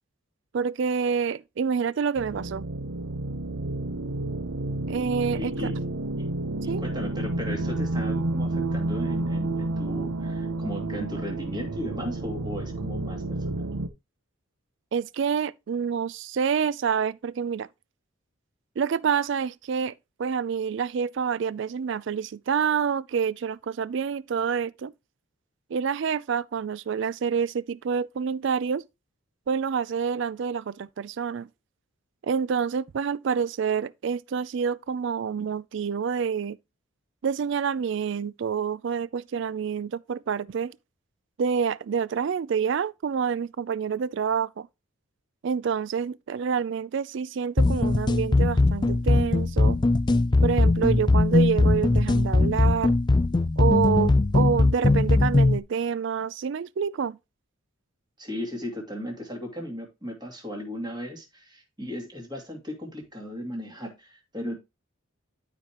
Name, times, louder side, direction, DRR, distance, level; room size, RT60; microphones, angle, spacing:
voice 1, 0.5-2.6 4.9-5.5 6.7-6.8 14.9-17.7 18.8-19.9 20.2-24.9 25.7-28.8 29.5-31.5 32.2-36.6 37.2-40.8 41.4-44.7 45.4-49.8 50.4-52.9 53.6-57.2, right 6 dB, 55° right, 0.3 m, -27 dB
sound 1, 2.2-13.9, right 2 dB, 80° right, 0.8 m, -30 dB
voice 2, 5.3-5.7 6.2-6.3 6.6-13.7 58.2-64.6, equal, 20° right, 2.4 m, -36 dB
sound 2, 47.6-55.6, left 2 dB, 20° left, 0.3 m, -20 dB
12.0 x 5.1 x 3.0 m
head